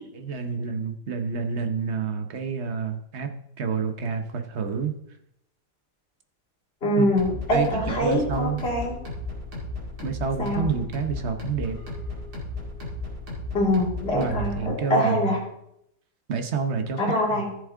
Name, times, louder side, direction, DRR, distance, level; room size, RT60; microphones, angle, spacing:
voice 1, 0.1-4.9 7.0-7.1 7.5-8.6 10.0-11.8 14.1-15.3 16.3-17.4, right 5 dB, 50° right, 6 dB, 1.1 m, -28 dB
voice 2, 6.8-8.9 10.4-10.6 13.5-15.4 17.0-17.5, left 1 dB, 40° left, -4 dB, 2.7 m, -24 dB
sound 1, 7.2-14.7, left 2 dB, 80° right, 3.2 m, -35 dB
14.0 x 7.2 x 3.7 m, 0.77 s
omnidirectional pair, 1.7 m